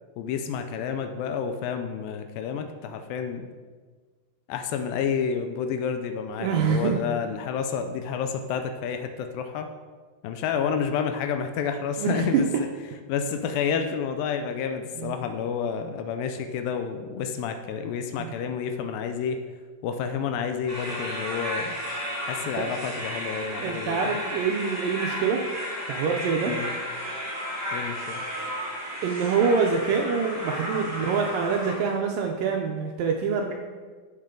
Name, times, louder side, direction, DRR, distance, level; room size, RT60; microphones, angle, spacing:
voice 1, 0.2-3.5 4.5-9.7 10.2-12.7 13.1-19.4 19.8-21.7 22.2-24.2 26.5-26.7 27.7-28.2, left 7 dB, 85° left, 7 dB, 2.0 m, -30 dB
voice 2, 6.4-7.0 12.0-12.4 15.0-15.2 18.2-18.3 22.6-22.7 23.6-25.4 25.9-26.5 29.0-33.5, right 5 dB, 80° right, 2 dB, 1.9 m, -25 dB
sound 1, 20.7-31.8, equal, 20° right, 0.4 m, -33 dB
12.5 x 7.3 x 3.8 m, 1.5 s
omnidirectional pair, 4.8 m